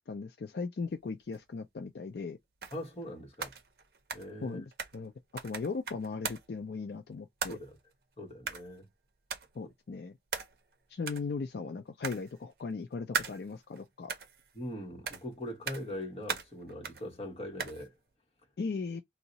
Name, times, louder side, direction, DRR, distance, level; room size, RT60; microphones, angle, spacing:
voice 1, 0.1-2.4 4.4-5.1 5.4-7.6 9.5-10.2 10.9-14.1 18.6-19.0, left 4 dB, 65° left, 0.4 m, -38 dB
sound 1, 1.3-1.4 2.6-3.1 3.3-5.1 5.4-6.6 7.4-7.9 8.5-8.8 9.3-9.6 10.3-10.7 11.0-11.3 12.0-12.6 13.1-13.8 14.1-14.7 15.0-15.3 15.7-16.0 16.3-17.1 17.6-17.9, right 6 dB, 55° right, 0.6 m, -39 dB
voice 2, 2.7-3.5 4.1-4.6 7.5-7.8 8.2-8.9 14.5-17.9, left 1 dB, 35° left, 1.0 m, -41 dB
2.7 x 2.1 x 3.9 m
head